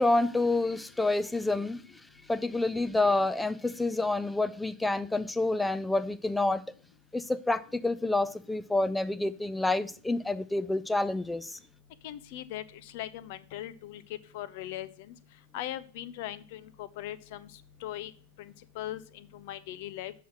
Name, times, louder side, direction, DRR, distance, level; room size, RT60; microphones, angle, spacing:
voice 1, 0.0-1.8 2.3-6.6 7.1-11.6, left 2 dB, 5° left, 0.5 m, -28 dB
voice 2, 12.0-14.0 14.3-15.1 15.5-17.5 17.8-18.1 18.4-20.1, left 13 dB, 50° left, 0.7 m, -40 dB
7.0 x 5.8 x 7.5 m
figure-of-eight pair, 90°, 0 cm